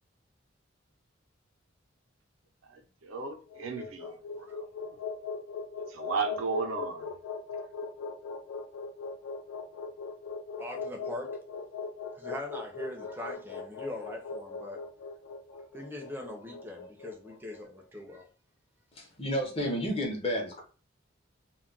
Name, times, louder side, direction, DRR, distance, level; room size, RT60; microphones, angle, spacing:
voice 1, 2.7-4.1 4.4-5.0 5.9-7.1, right 5 dB, 90° right, 0.6 m, -35 dB
sound 1, 3.4-17.7, left 5 dB, 80° left, 0.3 m, -39 dB
voice 2, 10.6-11.4 12.1-14.8 15.5-18.3, left 1 dB, 10° right, 0.5 m, -41 dB
voice 3, 18.9-20.6, equal, 30° left, 0.7 m, -31 dB
2.2 x 2.1 x 3.7 m
head